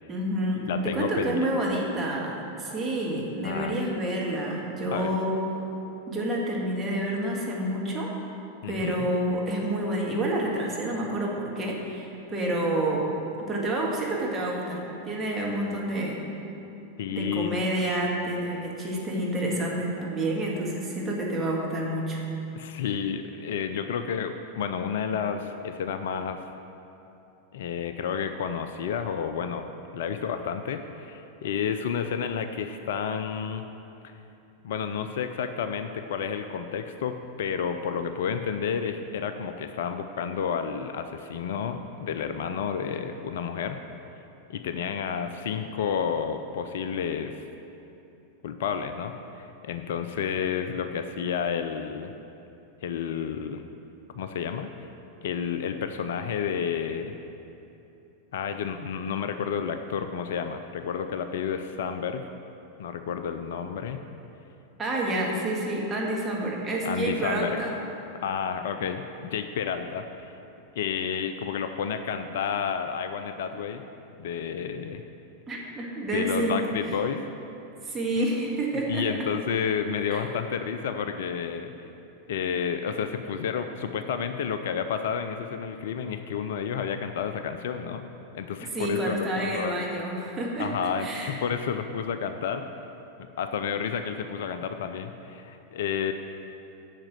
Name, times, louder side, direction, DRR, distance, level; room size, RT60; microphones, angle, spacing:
voice 1, 0.1-5.3 6.1-8.1 8.6-13.1 13.5-16.2 17.1-22.2 64.8-67.7 75.5-76.6 77.8-79.1 80.1-80.2 88.7-90.7 91.0-91.4, right 1 dB, 15° right, -3 dB, 2.0 m, -28 dB
voice 2, 0.6-1.5 3.4-3.8 4.9-5.2 8.6-9.1 17.0-17.6 22.6-26.4 27.5-29.6 29.9-33.6 34.6-43.8 44.5-47.4 48.4-52.1 52.8-53.6 54.1-54.7 55.2-57.1 58.3-62.3 62.8-64.0 66.8-67.6 68.1-70.3 70.8-73.8 74.2-75.0 76.1-77.3 78.2-78.3 78.9-81.7 82.3-88.0 88.3-89.8 90.6-92.8 93.4-96.1, left 7 dB, 55° left, 8 dB, 0.4 m, -30 dB
8.9 x 6.0 x 7.6 m, 2.9 s
figure-of-eight pair, 90°, 0 cm